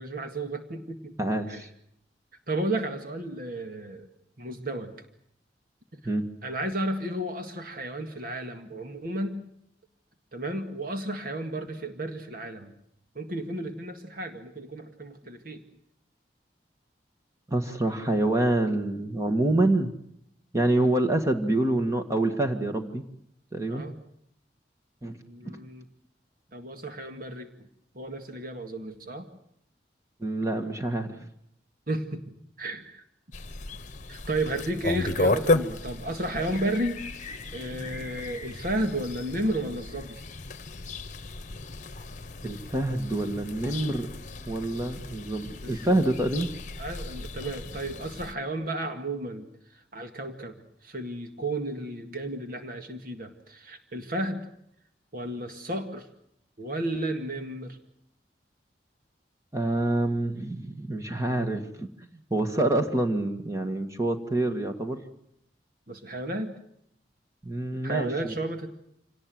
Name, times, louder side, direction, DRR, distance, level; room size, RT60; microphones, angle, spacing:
voice 1, 0.0-1.1 1.5-1.7 2.5-4.1 4.4-4.9 5.9-6.0 6.4-9.4 10.3-12.7 13.2-15.6 23.7-23.9 25.2-25.9 26.5-27.5 28.0-29.3 31.9-32.2 32.6-33.0 34.1-40.2 45.6-46.0 46.8-49.5 49.9-54.4 55.1-56.1 56.6-57.8 65.9-66.6 67.8-68.7, right 1 dB, 55° right, 6 dB, 2.0 m, -33 dB
voice 2, 1.2-1.7 6.1-6.3 17.5-19.9 20.5-23.0 23.5-23.8 25.0-25.6 30.2-31.2 42.4-44.1 44.5-46.5 59.5-61.9 62.3-65.0 67.4-68.3, right 1 dB, 15° right, 5 dB, 1.8 m, -26 dB
sound 1, 33.3-48.3, left 2 dB, 45° left, 1.1 m, -34 dB
26.0 x 18.5 x 7.8 m, 0.74 s
head